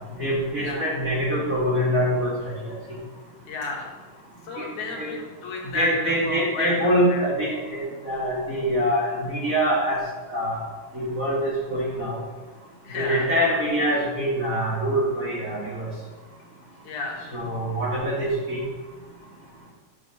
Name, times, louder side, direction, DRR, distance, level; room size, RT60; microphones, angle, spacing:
voice 1, 0.2-2.3 4.6-4.7 5.0-5.1 5.7-10.0 10.3-10.6 10.9-12.2 12.9-15.8 17.3-18.6, equal, 30° right, -7 dB, 2.3 m, -24 dB
voice 2, 3.5-3.9 4.4-7.2 12.8-13.3 16.8-17.4, left 2 dB, 70° left, -1 dB, 2.7 m, -32 dB
8.3 x 5.1 x 7.2 m, 1.3 s
omnidirectional pair, 3.5 m